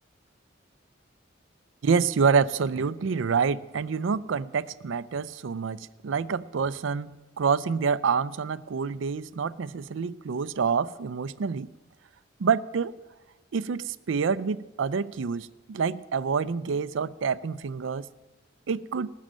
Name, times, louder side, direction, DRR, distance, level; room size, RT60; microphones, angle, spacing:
voice 1, 1.8-11.7 12.4-12.9 13.5-18.1 18.7-19.1, right 5 dB, 80° right, 0.4 m, -27 dB
19.0 x 6.5 x 7.4 m
head